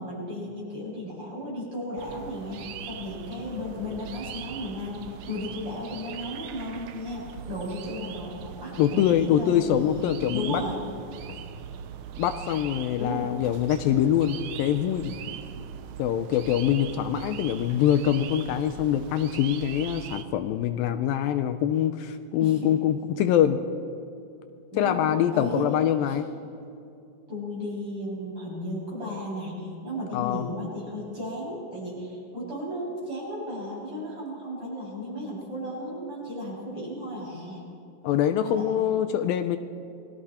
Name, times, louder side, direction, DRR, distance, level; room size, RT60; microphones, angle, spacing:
voice 1, 0.0-10.1 10.3-10.8 13.0-13.3 22.4-22.8 24.7-25.7 26.1-26.2 27.3-37.6 38.4-38.7, left 1 dB, 35° right, -5 dB, 8.1 m, -35 dB
sound 1, 2.0-20.2, right 8 dB, 75° right, 1.9 m, -41 dB
voice 2, 8.8-10.6 12.2-15.1 16.0-23.6 24.8-26.3 30.1-30.5 38.0-39.6, left 10 dB, 80° left, 9 dB, 2.4 m, -24 dB
28.5 x 21.0 x 4.3 m, 2.6 s
omnidirectional pair, 4.2 m